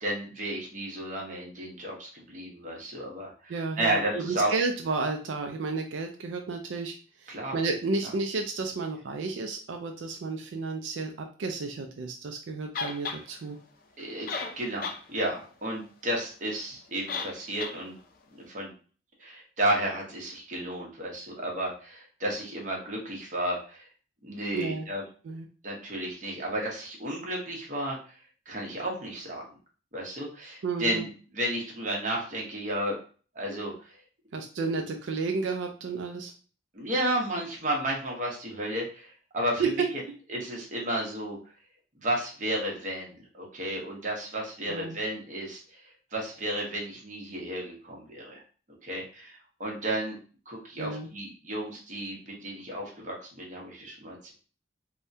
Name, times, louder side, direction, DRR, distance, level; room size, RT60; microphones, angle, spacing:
voice 1, 0.0-4.5 7.3-7.6 8.0-8.1 14.0-14.3 14.6-18.0 18.5-18.7 19.2-23.9 24.2-25.0 25.6-28.0 28.5-29.5 29.9-31.1 31.3-33.0 33.3-33.9 36.7-39.6 40.3-41.4 42.0-45.8 46.1-48.4 48.8-50.2 50.5-54.3, right 1 dB, 45° right, -1 dB, 0.9 m, -32 dB
voice 2, 3.5-6.9 7.2-13.6 24.5-24.9 25.2-25.4 30.6-31.0 34.3-36.3 39.6-39.9 44.7-45.0 50.8-51.1, right 4 dB, 90° right, 3 dB, 0.4 m, -32 dB
sound 1, 12.7-13.2 14.0-14.1 14.3-15.0 15.4-15.5 17.1-17.3 17.6-17.7, left 4 dB, 50° left, 0.4 m, -33 dB
3.4 x 2.2 x 2.6 m, 0.39 s
head